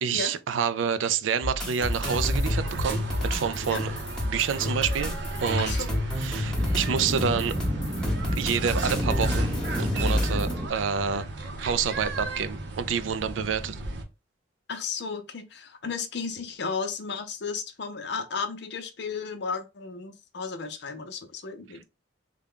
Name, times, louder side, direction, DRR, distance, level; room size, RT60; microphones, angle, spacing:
voice 1, 0.0-3.9 4.2-5.1 5.4-5.7 6.2-7.5 8.4-11.3 11.6-13.8, right 7 dB, 85° right, 0.4 m, -28 dB
sound 1, 1.4-10.5, left 1 dB, 5° left, 1.0 m, -29 dB
sound 2, 1.8-14.0, right 2 dB, 65° right, 0.7 m, -35 dB
sound 3, 5.7-10.7, equal, 20° right, 0.6 m, -32 dB
voice 2, 14.7-21.8, left 5 dB, 60° left, 0.6 m, -34 dB
3.5 x 2.2 x 3.6 m
head